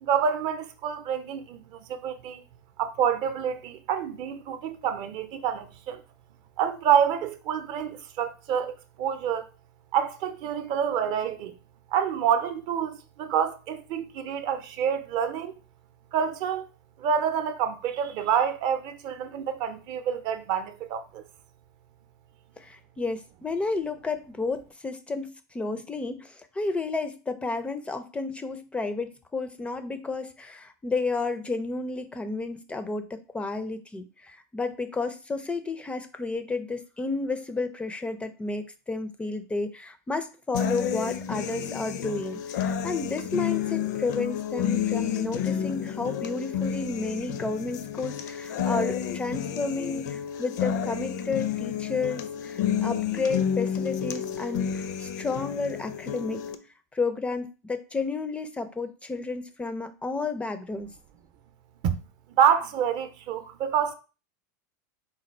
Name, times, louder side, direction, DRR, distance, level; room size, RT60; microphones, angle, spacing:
voice 1, 0.0-2.4 2.8-6.0 6.6-9.4 9.9-11.5 11.9-15.5 16.1-16.7 17.0-21.2 61.8-61.9 62.4-63.9, right 8 dB, 50° right, 0.6 m, -27 dB
voice 2, 22.6-56.4 56.9-60.9, left 3 dB, 10° left, 0.4 m, -32 dB
sound 1, 40.5-56.6, left 8 dB, 70° left, 0.5 m, -30 dB
4.1 x 2.3 x 4.3 m
supercardioid pair, 125°, 10 cm